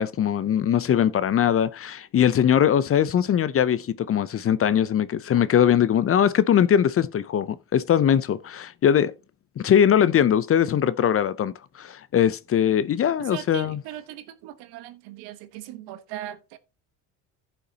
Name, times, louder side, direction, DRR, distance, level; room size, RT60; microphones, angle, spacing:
voice 1, 0.0-9.1 9.6-13.8, left 9 dB, 35° left, 0.6 m, -21 dB
voice 2, 13.2-16.6, right 13 dB, 70° right, 1.3 m, -39 dB
15.0 x 5.7 x 2.9 m
hypercardioid pair, 75°, 41 cm